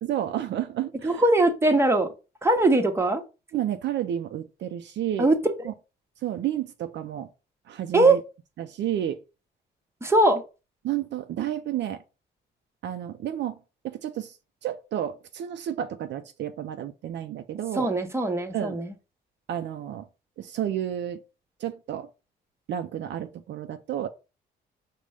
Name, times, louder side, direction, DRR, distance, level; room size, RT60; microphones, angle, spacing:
voice 1, 0.0-1.2 3.5-5.3 5.6-5.7 6.2-7.3 7.7-8.2 8.6-9.2 10.8-12.0 12.8-13.6 13.8-14.4 14.6-17.9 18.5-18.8 19.5-20.1 20.4-21.2 21.6-22.1 22.7-24.1, right 11 dB, 65° right, 0.4 m, -31 dB
voice 2, 1.0-2.1 2.4-3.2 5.2-5.3 7.9-8.2 10.0-10.4 17.8-18.9, right 2 dB, 15° right, 0.9 m, -21 dB
5.2 x 2.1 x 4.8 m
cardioid pair, 90°, 20 cm